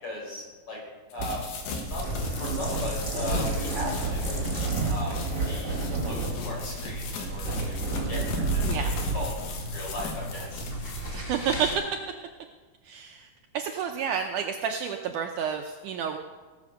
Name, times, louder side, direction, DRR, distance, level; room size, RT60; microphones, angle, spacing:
voice 1, 0.0-0.8 1.1-1.4 1.8-2.1 2.4-4.4 4.9-5.2 5.5-9.3 9.7-10.7, left 1 dB, 35° left, -3 dB, 5.5 m, -37 dB
sound 1, 1.1-11.1, left 4 dB, 90° left, 3.6 m, -38 dB
sound 2, 1.2-9.2, right 3 dB, 25° right, 2.4 m, -30 dB
sound 3, 1.9-11.7, equal, 20° left, 1.5 m, -37 dB
voice 2, 8.6-9.0 11.1-12.0 12.8-16.2, right 7 dB, 80° right, 4 dB, 1.9 m, -30 dB
18.0 x 7.7 x 6.4 m, 1.3 s
omnidirectional pair, 4.2 m